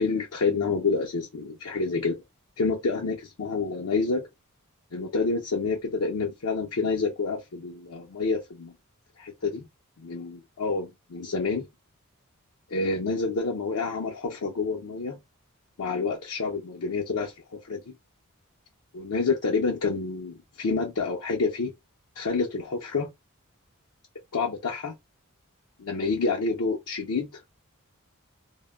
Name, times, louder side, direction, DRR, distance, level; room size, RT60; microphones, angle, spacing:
voice 1, 0.0-2.2 2.6-4.3 4.9-8.7 9.2-9.6 10.0-11.6 12.7-15.2 15.8-17.9 18.9-21.7 22.2-23.1 24.3-24.9 25.8-27.4, left 4 dB, 75° left, 0.6 m, -28 dB
2.1 x 2.1 x 3.4 m
head